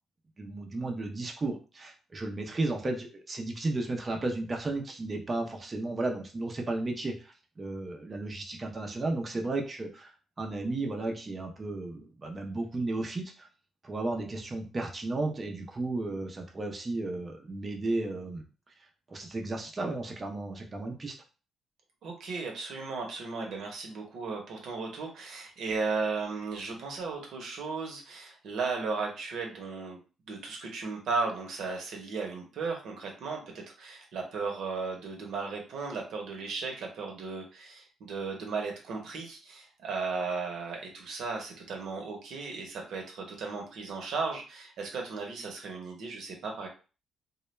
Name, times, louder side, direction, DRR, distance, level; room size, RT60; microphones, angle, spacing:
voice 1, 0.4-10.1 10.4-13.5 13.8-18.4 19.1-21.1, right 2 dB, 30° right, 2 dB, 0.5 m, -34 dB
voice 2, 22.0-30.0 30.3-46.7, right 4 dB, 75° right, 1 dB, 0.8 m, -35 dB
2.2 x 2.1 x 3.0 m, 0.34 s
cardioid pair, 90°, 0 cm